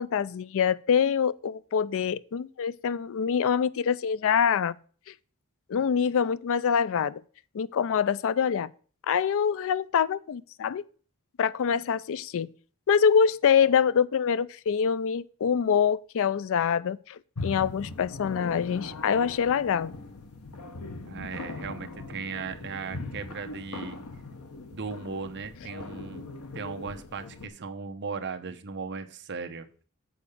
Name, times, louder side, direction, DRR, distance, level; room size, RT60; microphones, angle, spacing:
voice 1, 0.0-4.8 5.7-7.2 7.5-8.7 9.1-10.8 11.4-12.5 12.9-19.9, left 7 dB, 65° left, 0.4 m, -25 dB
sound 1, 17.4-27.5, left 3 dB, 90° left, 1.1 m, -40 dB
voice 2, 21.1-24.0 24.7-26.3 26.5-29.7, right 5 dB, 55° right, 0.8 m, -37 dB
7.1 x 4.8 x 6.7 m
head